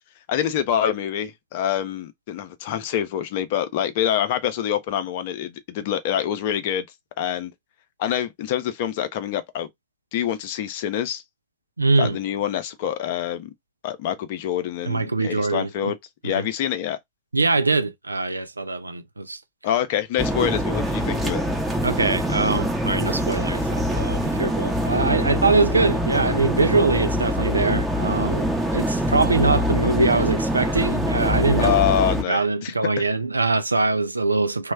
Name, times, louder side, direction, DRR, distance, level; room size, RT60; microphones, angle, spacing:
voice 1, 0.3-6.8 7.2-7.5 8.0-9.7 10.1-11.2 12.0-13.5 13.8-16.0 16.2-17.0 19.6-21.4 31.6-33.1, left 10 dB, 50° left, 0.6 m, -26 dB
voice 2, 11.8-12.2 14.9-15.9 16.2-16.3 17.3-19.4 21.8-31.7 32.3-34.7, right 3 dB, 80° right, 0.4 m, -23 dB
sound 1, 20.2-32.2, equal, 5° right, 0.8 m, -24 dB
3.0 x 2.2 x 3.2 m
figure-of-eight pair, 90°, 0 cm